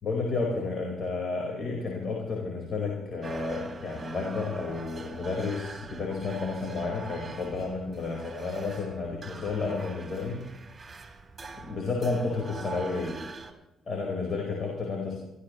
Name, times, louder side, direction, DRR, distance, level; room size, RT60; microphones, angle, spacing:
voice 1, 0.0-10.5 11.6-13.2 13.9-15.2, left 3 dB, 50° left, 0 dB, 4.7 m, -31 dB
sound 1, 3.2-13.5, right 4 dB, 30° right, 3.2 m, -44 dB
24.0 x 15.0 x 3.2 m, 0.99 s
cardioid pair, 90°, 0 cm